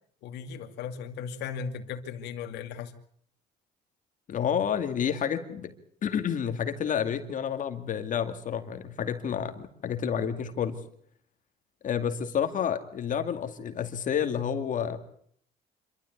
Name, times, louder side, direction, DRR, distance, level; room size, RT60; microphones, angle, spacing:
voice 1, 0.2-2.9, left 6 dB, 80° left, 5 dB, 2.5 m, -37 dB
voice 2, 4.3-5.7 6.0-10.8 11.8-15.0, left 8 dB, 50° left, 7 dB, 2.3 m, -29 dB
27.0 x 13.0 x 9.4 m, 0.65 s
cardioid pair, 110°, 17 cm